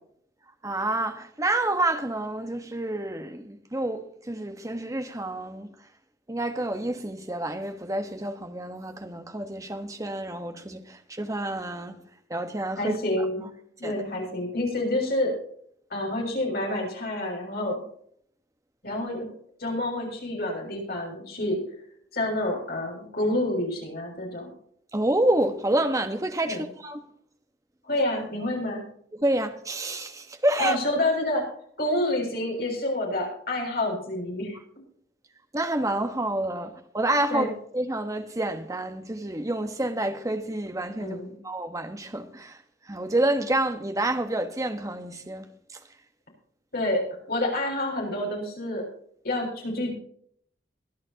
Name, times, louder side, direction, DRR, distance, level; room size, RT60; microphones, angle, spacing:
voice 1, 0.6-5.7 6.3-12.0 12.3-13.0 13.8-14.0 24.9-27.0 29.2-30.8 35.5-42.6 42.9-45.8, right 1 dB, 20° right, 1.3 m, -28 dB
voice 2, 12.8-13.5 13.8-15.3 15.9-17.8 18.8-19.3 19.6-21.6 22.1-24.5 26.4-26.6 27.8-28.8 30.6-31.4 31.8-34.6 37.3-37.5 41.0-41.4 46.7-47.0 47.3-48.8 49.2-49.9, left 1 dB, 60° left, 6.7 m, -28 dB
23.5 x 11.0 x 2.9 m
head